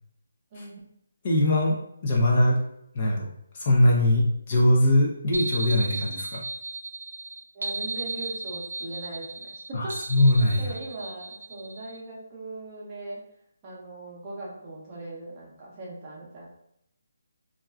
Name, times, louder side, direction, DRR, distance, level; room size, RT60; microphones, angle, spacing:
voice 1, 1.2-1.8 2.0-2.6 2.9-3.3 3.5-6.4 9.7-10.7, left 1 dB, 30° left, -2 dB, 0.4 m, -21 dB
sound 1, 5.3-12.0, right 3 dB, 85° right, 0.4 m, -35 dB
voice 2, 7.5-10.0 10.6-13.2 13.6-16.5, right 2 dB, 20° right, -5 dB, 0.6 m, -39 dB
2.3 x 2.2 x 3.3 m, 0.75 s
hypercardioid pair, 175°, 0 cm